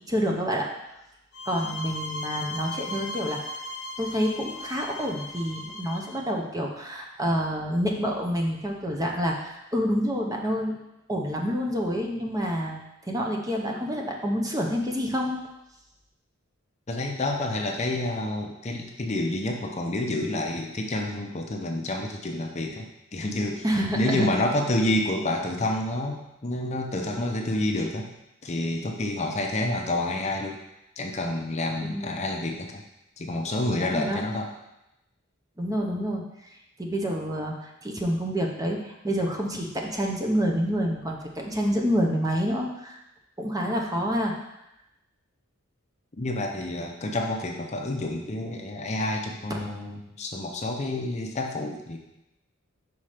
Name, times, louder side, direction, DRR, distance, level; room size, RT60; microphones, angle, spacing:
voice 1, 0.1-0.7 1.5-3.4 4.0-10.7 11.1-15.4 23.6-24.3 31.9-32.1 33.9-34.2 35.6-36.2 36.8-43.0 43.4-44.3, equal, 15° right, 0 dB, 0.8 m, -28 dB
sound 1, 1.3-6.2, left 2 dB, 80° left, 0.9 m, -37 dB
voice 2, 16.9-23.6 23.9-28.1 28.4-30.6 31.0-32.8 33.2-34.5 46.2-52.0, left 1 dB, 30° left, 2 dB, 0.7 m, -29 dB
5.8 x 4.3 x 5.0 m, 0.90 s
head